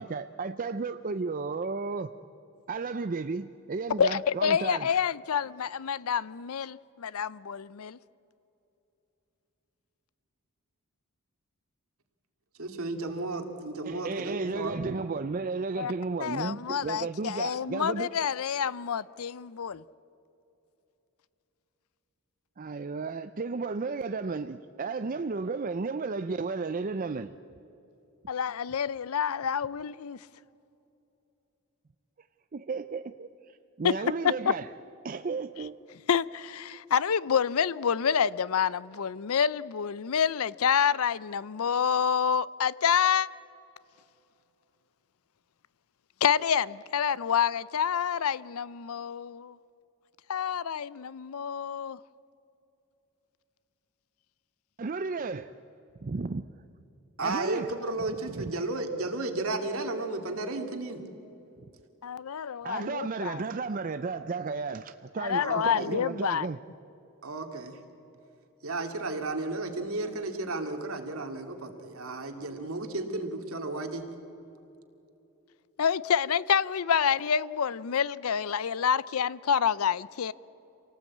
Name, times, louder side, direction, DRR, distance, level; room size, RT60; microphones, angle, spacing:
voice 1, 0.0-2.1 2.7-4.9 13.8-18.1 22.6-27.3 32.5-34.7 35.0-35.8 54.8-55.5 56.0-56.5 57.2-57.7 58.3-58.5 62.6-66.6, right 4 dB, 40° right, 0.5 m, -33 dB
voice 2, 4.0-8.0 15.8-15.9 16.2-19.8 28.3-30.2 33.8-34.3 36.1-43.3 46.2-49.6 50.3-52.0 62.0-63.4 65.2-66.5 75.8-80.3, left 7 dB, 75° left, 0.5 m, -28 dB
voice 3, 12.6-14.8 57.2-61.0 65.4-65.9 67.2-67.8 68.6-74.0, right 2 dB, 70° right, 2.4 m, -33 dB
27.0 x 18.5 x 8.6 m
head